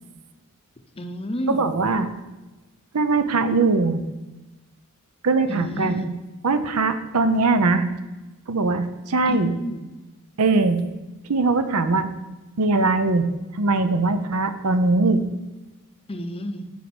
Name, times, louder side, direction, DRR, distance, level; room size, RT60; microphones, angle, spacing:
voice 1, 0.9-1.7 5.5-6.1 9.3-9.8 16.1-16.7, equal, 25° left, 7 dB, 0.6 m, -31 dB
voice 2, 1.5-2.1 2.9-4.0 5.2-6.1 6.4-7.9 8.5-9.5 10.4-10.8 11.3-12.1 12.6-13.3 13.5-15.2, right 3 dB, 80° right, 10 dB, 0.7 m, -21 dB
8.3 x 5.2 x 6.1 m, 1.1 s
head